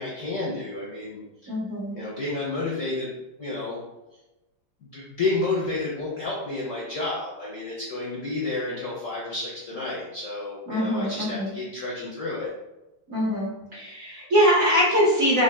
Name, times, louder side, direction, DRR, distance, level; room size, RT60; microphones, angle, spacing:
voice 1, 0.0-1.5 1.9-3.8 4.8-12.5, left 2 dB, 65° left, -5 dB, 0.8 m, -31 dB
voice 2, 1.5-1.9 10.7-11.5 13.1-15.4, equal, 50° right, -6 dB, 1.1 m, -22 dB
3.9 x 3.3 x 2.2 m, 1.0 s
omnidirectional pair, 2.2 m